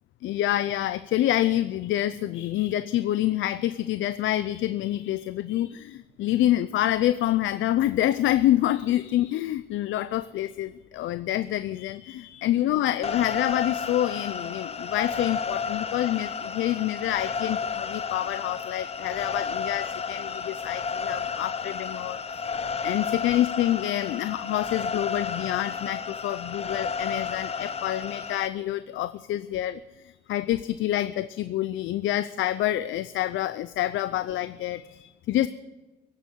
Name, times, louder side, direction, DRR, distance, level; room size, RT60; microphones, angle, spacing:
voice 1, 0.2-22.4 22.8-35.5, left 13 dB, 80° left, 14 dB, 0.5 m, -27 dB
sound 1, 13.0-28.5, left 5 dB, 30° left, 0.7 m, -32 dB
16.0 x 8.5 x 9.4 m, 1.1 s
cardioid pair, 90°, 20 cm